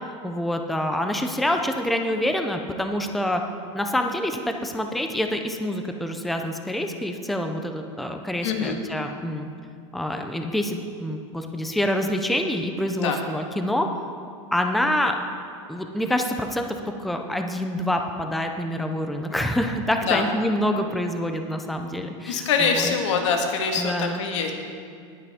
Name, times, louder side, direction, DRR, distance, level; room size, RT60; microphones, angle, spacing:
voice 1, 0.2-3.4 3.7-9.5 9.9-13.9 14.5-15.2 15.7-16.7 17.0-22.9 23.8-24.2, left 1 dB, ahead, 5 dB, 0.4 m, -26 dB
voice 2, 8.4-8.8 13.0-13.2 20.0-20.2 22.3-24.5, left 5 dB, 75° left, 3 dB, 1.7 m, -24 dB
19.5 x 8.4 x 3.6 m, 2.4 s
supercardioid pair, 165°, 16 cm